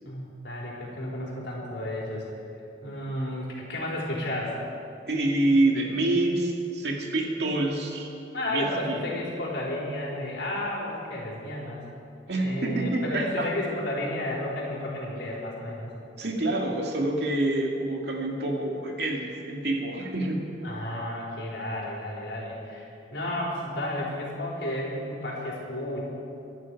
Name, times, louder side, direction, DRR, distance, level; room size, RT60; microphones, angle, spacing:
voice 1, 0.0-2.3 2.8-4.6 8.3-11.8 12.4-15.9 20.6-26.0, left 1 dB, 70° left, -4 dB, 4.5 m, -32 dB
voice 2, 5.1-8.1 8.5-9.1 12.3-13.5 16.2-20.5, right 2 dB, 60° right, 0 dB, 2.3 m, -27 dB
25.5 x 11.0 x 4.9 m, 2.7 s
head